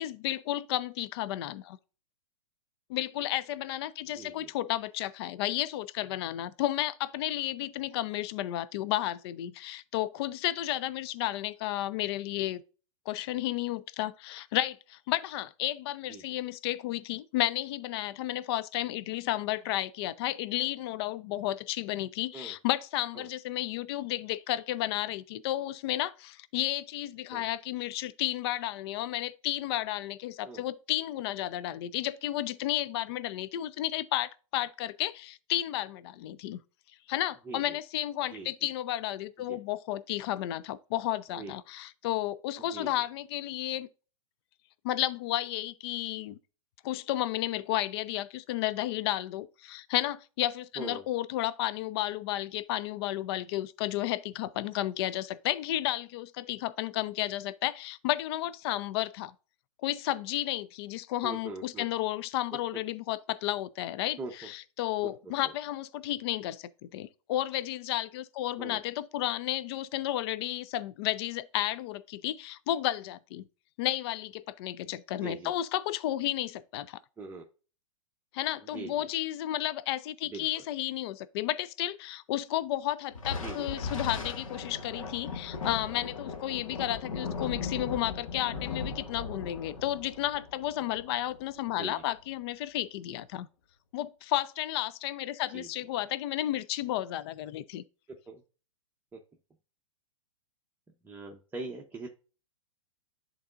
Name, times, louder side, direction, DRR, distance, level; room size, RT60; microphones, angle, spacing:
voice 1, 0.0-1.8 2.9-12.6 13.1-36.6 37.1-43.9 44.8-46.4 46.8-59.3 59.8-73.5 73.8-77.0 78.3-93.5 93.9-97.8, left 14 dB, 50° left, 0.4 m, -32 dB
voice 2, 4.2-4.5 16.1-16.2 22.3-22.5 23.2-23.3 27.3-27.5 30.5-30.6 37.5-37.8 38.3-38.5 39.5-39.6 41.4-41.5 42.6-42.9 50.8-51.1 61.2-61.8 64.2-64.3 65.4-65.5 68.6-68.8 75.2-75.5 77.2-77.5 78.7-78.9 80.3-80.5 83.4-83.7 87.2-87.3 91.8-92.0 95.5-95.7 98.3-98.4 99.1-99.2 101.0-102.1, right 3 dB, 10° right, 0.8 m, -41 dB
Thunder, 83.1-91.9, left 4 dB, 70° left, 1.4 m, -38 dB
11.0 x 4.0 x 2.5 m
hypercardioid pair, 110°, 18 cm